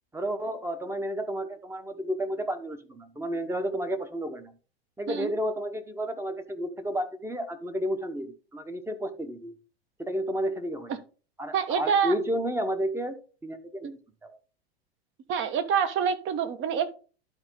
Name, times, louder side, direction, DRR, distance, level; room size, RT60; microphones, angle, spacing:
voice 1, 0.1-4.5 5.0-9.5 10.0-10.9 11.4-14.4, equal, 10° right, 9 dB, 1.0 m, -32 dB
voice 2, 11.5-12.1 15.3-16.9, right 7 dB, 40° right, 11 dB, 1.2 m, -26 dB
11.5 x 4.3 x 3.8 m, 0.36 s
hypercardioid pair, 100°, 32 cm